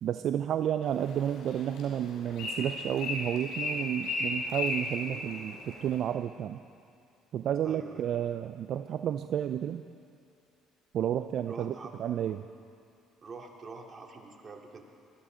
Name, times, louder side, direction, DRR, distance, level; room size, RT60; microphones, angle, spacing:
voice 1, 0.0-6.6 7.3-9.8 10.9-12.5, right 10 dB, 60° right, 10 dB, 0.4 m, -31 dB
Bird, 0.8-6.0, left 2 dB, 75° left, 4.5 m, -36 dB
voice 2, 7.6-8.1 11.5-11.9 13.2-14.8, right 4 dB, 35° right, 1 dB, 2.5 m, -45 dB
21.5 x 13.0 x 5.1 m, 2.5 s
supercardioid pair, 70°, 0 cm